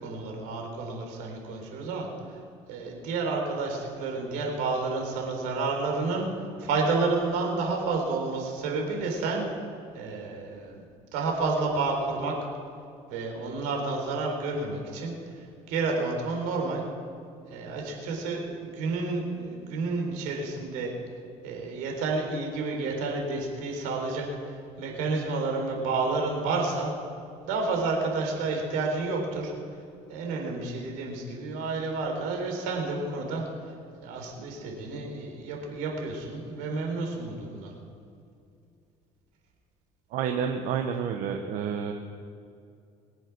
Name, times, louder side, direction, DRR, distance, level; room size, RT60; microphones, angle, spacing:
voice 1, 0.0-2.4 2.7-9.4 9.9-10.8 11.1-12.3 13.1-16.8 17.5-20.9 21.4-26.9 27.4-29.5 30.1-33.7 34.0-37.7, right 3 dB, 90° right, 1 dB, 4.0 m, -30 dB
voice 2, 40.1-41.9, right 7 dB, 70° right, 4 dB, 1.1 m, -29 dB
23.5 x 7.8 x 6.2 m, 2.5 s
cardioid pair, 115°, 14 cm